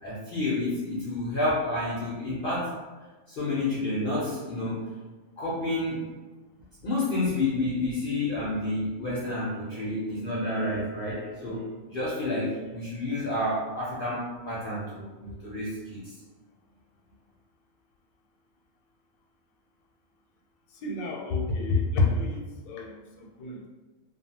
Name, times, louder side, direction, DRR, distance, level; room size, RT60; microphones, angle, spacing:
voice 1, 0.0-2.7 3.3-4.9 5.4-6.1 6.8-16.1, left 2 dB, 55° left, -7 dB, 0.6 m, -30 dB
voice 2, 20.8-23.7, left 3 dB, 90° left, 0 dB, 1.0 m, -28 dB
2.4 x 2.3 x 2.7 m, 1.2 s
omnidirectional pair, 1.4 m